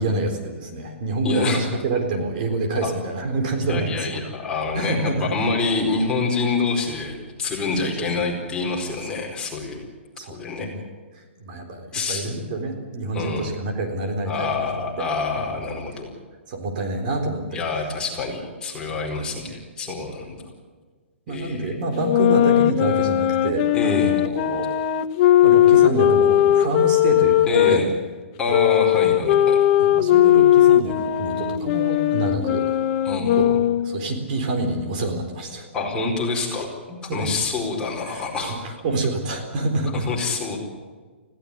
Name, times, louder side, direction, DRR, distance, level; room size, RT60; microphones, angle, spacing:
voice 1, 0.0-4.2 4.7-5.3 7.8-8.1 10.2-10.8 11.1-14.7 15.4-15.5 16.5-17.6 21.3-24.7 25.2-27.8 29.8-32.8 33.4-33.5 33.8-35.7 36.9-37.3 38.1-40.1, right 2 dB, 45° right, 4 dB, 4.0 m, -27 dB
voice 2, 1.2-1.6 2.8-2.9 3.6-9.9 10.3-10.7 11.9-12.3 13.1-13.5 14.3-16.1 17.5-20.5 21.3-21.8 23.7-24.1 27.5-27.9 28.4-29.6 33.0-33.6 35.7-36.7 37.1-38.6 39.9-40.6, left 3 dB, 10° left, -2 dB, 4.6 m, -26 dB
sound 1, 22.0-27.8 28.5-34.0, left 12 dB, 35° left, 1.1 m, -18 dB
20.5 x 16.5 x 9.8 m, 1.4 s
hypercardioid pair, 155°, 7 cm